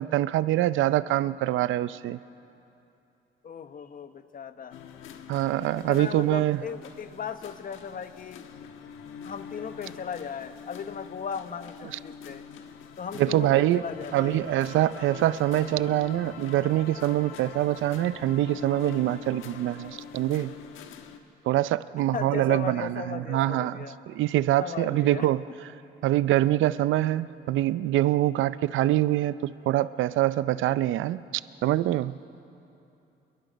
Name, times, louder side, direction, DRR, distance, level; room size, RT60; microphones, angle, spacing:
voice 1, 0.0-2.2 5.3-6.6 11.9-12.0 13.2-13.8 14.1-20.5 21.5-25.4 26.0-31.2 31.6-32.1, right 14 dB, 80° right, 16 dB, 0.5 m, -25 dB
voice 2, 3.4-4.7 5.8-8.4 9.2-12.4 13.0-14.4 22.1-24.0 24.6-25.3, left 7 dB, 45° left, 10 dB, 1.1 m, -37 dB
sound 1, 4.7-21.2, left 7 dB, 90° left, 1.3 m, -44 dB
28.5 x 21.5 x 5.2 m, 2.8 s
cardioid pair, 90°, 20 cm